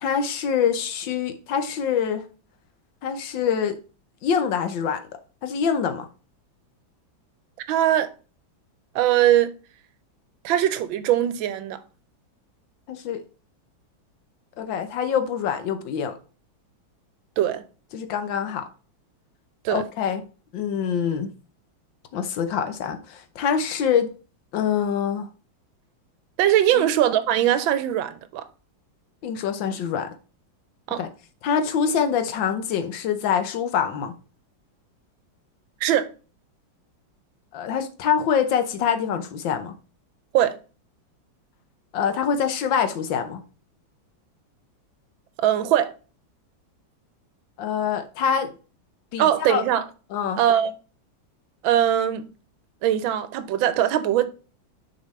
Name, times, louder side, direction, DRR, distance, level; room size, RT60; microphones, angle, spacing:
voice 1, 0.0-2.3 3.0-3.8 4.2-5.0 5.4-6.1 12.9-13.2 14.6-16.2 17.9-18.7 19.7-20.2 20.5-21.3 22.1-24.1 24.5-25.3 26.7-26.9 29.2-30.1 31.0-31.1 31.4-34.1 37.5-39.8 41.9-43.4 47.6-48.5 49.1-49.6 50.1-50.4, left 7 dB, 75° left, 1.5 m, -25 dB
voice 2, 7.7-8.1 8.9-9.5 10.4-11.8 17.4-17.6 19.6-19.8 26.4-28.5 30.9-31.0 35.8-36.1 40.3-40.6 45.4-45.9 49.2-49.8 50.4-50.7 51.6-52.3 52.8-54.2, right 11 dB, 80° right, 1.4 m, -21 dB
6.6 x 5.4 x 3.2 m
omnidirectional pair, 2.2 m